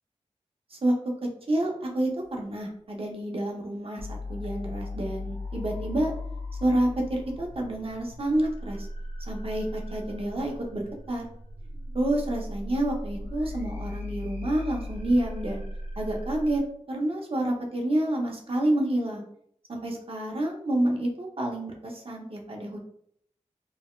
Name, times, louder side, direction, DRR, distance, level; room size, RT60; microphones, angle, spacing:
voice 1, 1.5-6.1 6.6-8.9 9.3-11.2 11.9-15.6 16.0-19.2 19.7-22.8, right 1 dB, 50° right, 0 dB, 0.7 m, -28 dB
sound 1, 4.0-16.6, left 1 dB, 80° left, 0.6 m, -37 dB
3.9 x 2.1 x 2.3 m, 0.67 s
wide cardioid pair, 65°, 12 cm